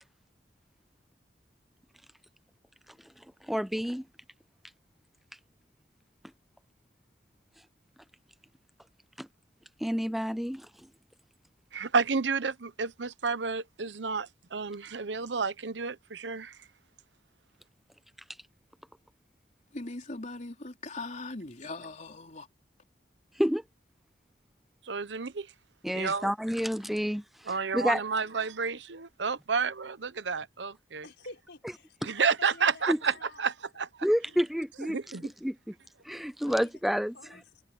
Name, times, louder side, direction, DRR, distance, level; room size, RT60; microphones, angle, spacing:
voice 1, 3.4-4.0 9.2-9.3 9.8-10.7 23.3-23.6 25.8-28.0 32.0-32.1 32.9-33.0 34.0-35.7 36.0-37.1, equal, ahead, 0.4 m, -29 dB
voice 2, 11.7-16.6 24.9-25.5 25.9-26.3 27.5-31.0 32.0-33.9 34.9-35.3, right 5 dB, 85° right, 0.9 m, -31 dB
voice 3, 19.7-22.5, left 2 dB, 45° left, 3.7 m, -40 dB
voice 4, 28.1-28.5 31.0-33.5 33.7-33.8 34.2-34.4 34.9-35.0 36.5-37.6, left 2 dB, 80° left, 4.6 m, -50 dB
head